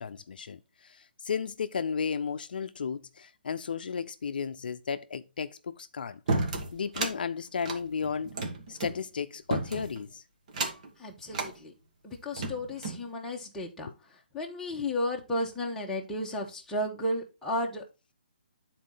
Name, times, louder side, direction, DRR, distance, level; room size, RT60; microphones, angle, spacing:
voice 1, 0.0-6.2 6.7-8.3 8.7-10.2, left 6 dB, 65° left, 0.5 m, -34 dB
sound 1, 6.3-7.2 7.6-9.0 9.5-10.0 10.5-10.9 11.3-11.5 12.1-13.0, right 3 dB, 45° right, 1.5 m, -32 dB
voice 2, 11.0-11.7 12.0-17.8, left 1 dB, 5° left, 1.1 m, -33 dB
9.3 x 4.2 x 3.8 m
hypercardioid pair, 160°, 5 cm